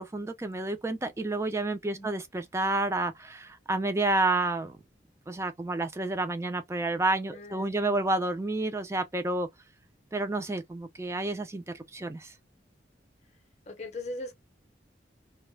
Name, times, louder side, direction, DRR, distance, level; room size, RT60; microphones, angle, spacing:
voice 1, 0.0-4.8 5.3-9.5 10.1-12.3, right 2 dB, 15° right, 0.4 m, -30 dB
voice 2, 7.3-8.0 13.7-14.3, left 2 dB, 40° left, 0.6 m, -40 dB
2.3 x 2.0 x 3.0 m
head